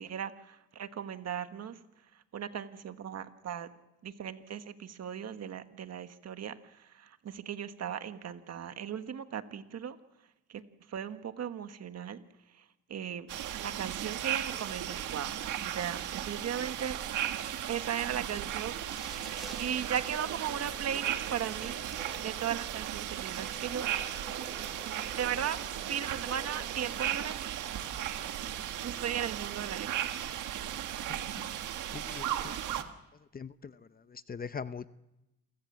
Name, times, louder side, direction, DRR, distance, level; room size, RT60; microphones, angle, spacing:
voice 1, 0.0-1.8 2.1-3.7 4.0-10.0 10.5-12.2 12.5-13.3 13.6-15.3 15.6-17.0 17.7-23.9 25.0-27.4 28.8-29.9, right 9 dB, 60° right, 9 dB, 1.5 m, -37 dB
sound 1, 13.3-32.8, right 11 dB, 80° right, 1.6 m, -36 dB
sound 2, 18.8-19.7 20.5-20.6 21.2-22.4 22.8-23.6, equal, ahead, 3.7 m, -53 dB
sound 3, 18.9-27.3, right 3 dB, 25° right, 5.9 m, -51 dB
voice 2, 31.9-32.8 33.3-33.7 34.1-34.9, left 6 dB, 30° left, 13 dB, 0.8 m, -42 dB
28.0 x 16.0 x 7.4 m, 0.93 s
cardioid pair, 90°, 30 cm